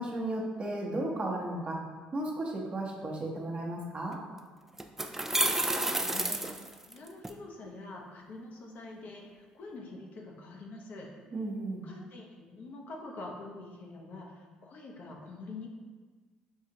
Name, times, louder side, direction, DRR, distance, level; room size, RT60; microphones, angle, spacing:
voice 1, 0.0-1.8 2.1-4.2 11.3-11.9, right 1 dB, 35° right, -2 dB, 0.9 m, -34 dB
sound 1, 4.1-4.2 4.8-7.3, right 1 dB, 10° right, 0.3 m, -30 dB
voice 2, 5.3-11.1 11.8-15.8, left 2 dB, 60° left, 0 dB, 0.7 m, -46 dB
5.5 x 2.4 x 2.8 m, 1.4 s
supercardioid pair, 70°, 3 cm